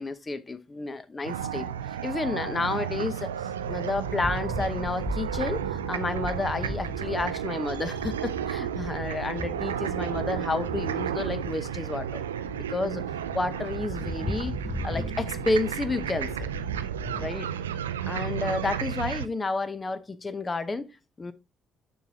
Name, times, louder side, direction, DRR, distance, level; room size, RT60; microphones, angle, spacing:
voice 1, 0.0-1.7 2.0-3.3 3.7-12.1 12.7-13.0 13.3-16.5 17.2-17.5 17.8-21.3, left 3 dB, 30° left, 0.7 m, -31 dB
sound 1, 1.2-19.3, right 9 dB, 85° right, 0.3 m, -33 dB
sound 2, 3.4-17.3, left 1 dB, 5° left, 0.9 m, -38 dB
6.8 x 6.2 x 2.8 m
hypercardioid pair, 50°, 0 cm